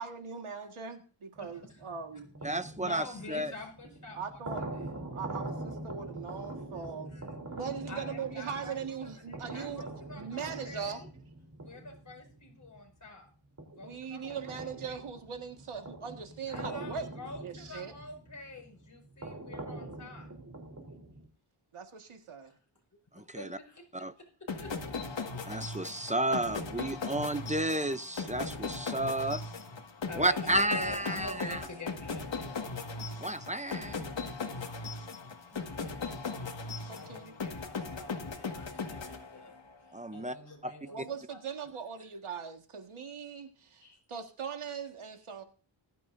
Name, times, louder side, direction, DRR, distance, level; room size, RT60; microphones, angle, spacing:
voice 1, 0.0-2.3 4.2-4.7 4.9-7.1 7.5-9.9 10.2-11.0 13.8-17.1 17.4-17.9 21.7-22.5 36.8-37.3 40.9-45.4, right 6 dB, 75° right, 5 dB, 1.8 m, -40 dB
voice 2, 1.4-1.8 2.4-4.4 4.7-4.9 7.1-7.3 7.9-11.1 11.6-13.3 13.7-14.7 16.5-20.3 23.4-24.3 24.6-24.7 26.0-26.1 27.0-27.2 30.1-32.7 33.7-33.8 36.9-39.6 40.1-41.0 41.3-41.4 41.6-41.8 43.8-44.0, left 2 dB, 35° left, 1 dB, 5.4 m, -46 dB
sound 1, 1.4-13.1 13.6-21.3, right 2 dB, 35° right, 3.4 m, -44 dB
voice 3, 2.4-3.5 23.2-23.5 24.0-24.1 25.5-29.4 30.2-31.6 33.2-34.0 39.9-40.4 40.6-40.7, right 1 dB, 15° right, 11 dB, 0.6 m, -32 dB
sound 2, 24.5-39.8, left 4 dB, 60° left, 1.9 m, -38 dB
20.5 x 12.5 x 2.6 m, 0.38 s
wide cardioid pair, 135°, 50 cm